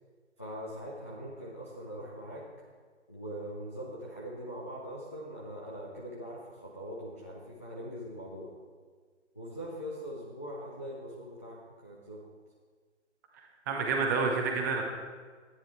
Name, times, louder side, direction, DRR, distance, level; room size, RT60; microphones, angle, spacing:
voice 1, 0.4-2.4 3.1-8.5 9.3-12.2, equal, 10° left, -6 dB, 0.5 m, -42 dB
voice 2, 13.7-14.8, right 4 dB, 15° right, 1 dB, 1.0 m, -28 dB
13.0 x 9.7 x 4.4 m, 1.5 s
figure-of-eight pair, 145°, 36 cm